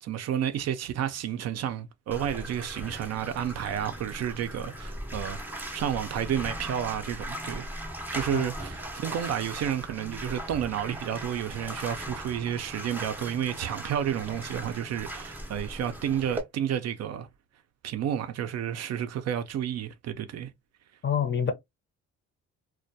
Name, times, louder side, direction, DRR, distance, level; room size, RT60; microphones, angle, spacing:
voice 1, 0.0-7.7 8.1-17.3 17.8-20.5, right 9 dB, 60° right, 0.4 m, -31 dB
Bathtub (filling or washing), 2.1-16.4, right 1 dB, 5° right, 0.5 m, -39 dB
voice 2, 21.0-21.5, left 7 dB, 40° left, 0.6 m, -26 dB
2.2 x 2.2 x 2.6 m
cardioid pair, 90°, 30 cm